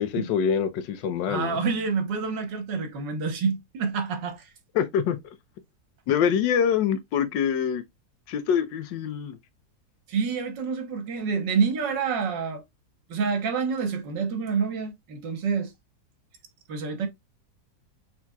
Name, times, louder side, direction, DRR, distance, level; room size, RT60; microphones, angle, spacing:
voice 1, 0.0-1.6 4.7-5.2 6.1-7.8 8.3-9.4, left 8 dB, 80° left, 1.3 m, -25 dB
voice 2, 1.3-4.5 10.1-12.6 13.1-15.7 16.7-17.1, right 5 dB, 75° right, 1.7 m, -27 dB
5.9 x 3.6 x 2.3 m
omnidirectional pair, 2.0 m